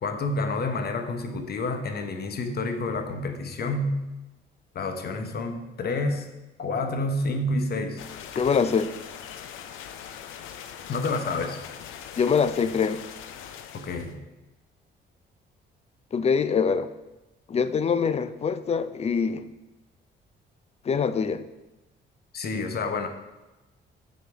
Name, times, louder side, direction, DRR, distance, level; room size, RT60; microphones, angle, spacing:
voice 1, 0.0-4.0 4.7-6.3 6.6-8.0 10.9-11.6 13.7-14.2 22.3-23.1, left 2 dB, 50° left, 6 dB, 1.0 m, -29 dB
sound 1, 8.0-14.2, left 8 dB, 90° left, 0.5 m, -41 dB
voice 2, 8.4-8.9 12.2-13.0 16.1-16.9 17.5-19.5 20.8-21.4, left 6 dB, 30° left, 12 dB, 0.4 m, -24 dB
6.8 x 4.2 x 4.8 m, 1.1 s
cardioid pair, 90°, 20 cm